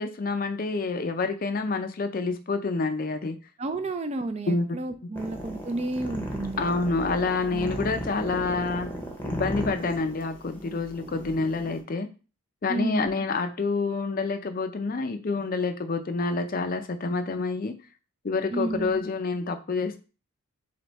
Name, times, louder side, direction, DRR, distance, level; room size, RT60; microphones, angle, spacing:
voice 1, 0.0-3.4 4.5-4.8 6.6-8.9 9.2-12.1 12.6-17.7 18.2-20.0, left 3 dB, 40° left, 8 dB, 0.4 m, -28 dB
voice 2, 3.6-6.6 7.5-7.8 12.7-13.1 18.5-19.0, right 2 dB, 30° right, 9 dB, 0.4 m, -31 dB
sound 1, 5.2-11.8, equal, 10° left, 0.7 m, -35 dB
3.7 x 3.4 x 4.0 m, 0.33 s
head